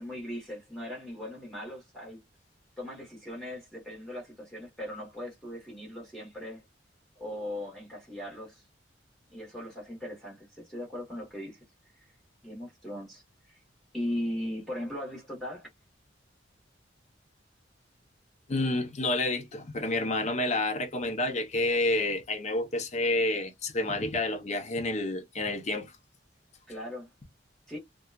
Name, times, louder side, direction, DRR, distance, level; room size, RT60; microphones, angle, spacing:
voice 1, 0.0-2.2 2.8-6.6 7.2-8.6 9.3-11.6 11.9-12.1 12.4-13.2 13.5-13.6 13.9-15.7 26.7-27.1 27.7-27.8, left 1 dB, ahead, 1.2 m, -38 dB
voice 2, 18.5-25.9, left 2 dB, 40° left, 0.6 m, -29 dB
2.8 x 2.3 x 2.3 m
head